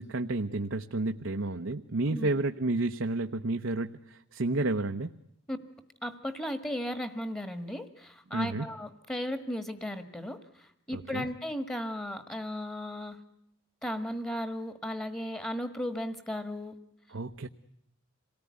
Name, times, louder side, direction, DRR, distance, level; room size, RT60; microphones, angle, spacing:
voice 1, 0.0-5.1 8.3-8.7 10.9-11.2 17.1-17.5, right 2 dB, 75° right, 6 dB, 0.9 m, -31 dB
voice 2, 6.0-13.2 13.8-16.7, equal, 10° left, 10 dB, 1.6 m, -35 dB
27.5 x 18.5 x 9.5 m, 0.82 s
head